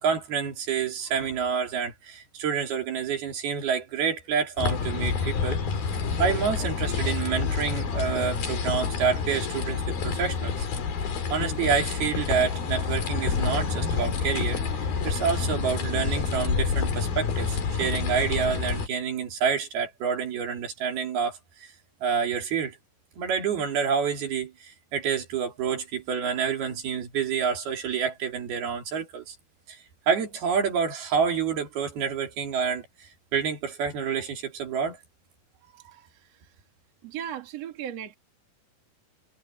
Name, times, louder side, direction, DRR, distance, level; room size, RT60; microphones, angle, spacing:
voice 1, 0.0-5.6 6.2-10.7 11.3-14.6 15.0-21.7 22.0-22.8 23.2-29.4 29.7-29.8 30.1-35.0, right 6 dB, 70° right, 5.2 m, -28 dB
sound 1, 4.6-18.9, left 5 dB, 65° left, 5.0 m, -28 dB
voice 2, 37.0-38.2, right 10 dB, 45° right, 3.1 m, -36 dB
omnidirectional pair, 4.7 m